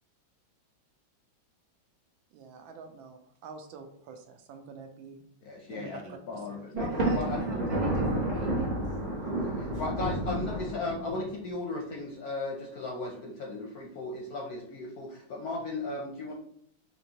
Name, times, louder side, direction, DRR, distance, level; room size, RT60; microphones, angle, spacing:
voice 1, 2.3-5.2 5.7-6.4, right 4 dB, 80° right, 6 dB, 1.3 m, -47 dB
voice 2, 5.4-7.6 9.4-16.3, left 3 dB, 70° left, -1 dB, 0.9 m, -36 dB
voice 3, 6.7-8.9, right 4 dB, 60° right, -1 dB, 1.2 m, -43 dB
Thunder, 6.8-11.3, right 1 dB, 40° right, 0.7 m, -30 dB
4.4 x 2.9 x 2.8 m, 0.65 s
omnidirectional pair, 2.2 m